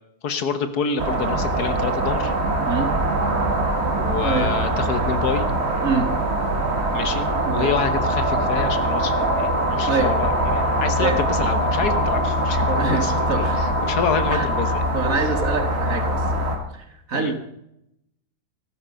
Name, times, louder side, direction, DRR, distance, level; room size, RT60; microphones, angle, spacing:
voice 1, 0.2-2.3 4.0-5.5 6.9-14.9 15.2-15.3 17.1-17.3, left 6 dB, 75° left, 10 dB, 1.7 m, -27 dB
sound 1, 1.0-16.6, right 1 dB, 40° right, 2.3 m, -23 dB
voice 2, 7.4-7.8 9.9-10.1 11.0-11.2 12.7-13.6 14.3-14.5 14.9-16.3 16.7-17.3, right 4 dB, 60° right, 7 dB, 2.0 m, -25 dB
sound 2, 7.7-14.9, left 4 dB, 5° left, 1.7 m, -30 dB
14.5 x 12.5 x 5.2 m, 0.81 s
omnidirectional pair, 1.7 m